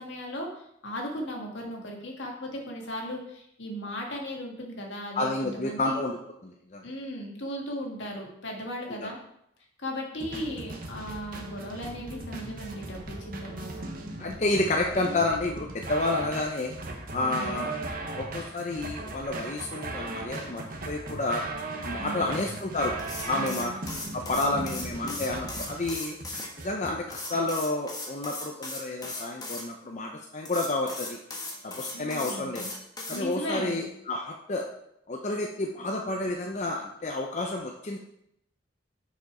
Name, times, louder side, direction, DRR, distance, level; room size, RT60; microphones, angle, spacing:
voice 1, 0.0-6.0 6.8-9.2 9.8-13.9 17.2-17.7 21.9-22.5 23.3-23.8 24.4-24.8 31.9-32.7 33.1-33.9, equal, 70° left, 0 dB, 1.7 m, -37 dB
voice 2, 5.2-6.2 6.4-6.9 9.0-9.1 14.2-16.7 17.1-17.7 18.1-21.4 21.8-22.9 23.3-23.7 24.1-26.2 26.6-31.2 31.6-32.6 33.1-34.6 35.1-38.0, left 2 dB, 35° left, 1 dB, 0.6 m, -30 dB
sound 1, 10.2-27.4, right 2 dB, 45° right, 1.0 m, -38 dB
sound 2, 23.0-26.5 27.1-29.6 30.4-33.2, left 2 dB, 20° left, 1.2 m, -37 dB
6.6 x 5.3 x 4.9 m, 0.75 s
head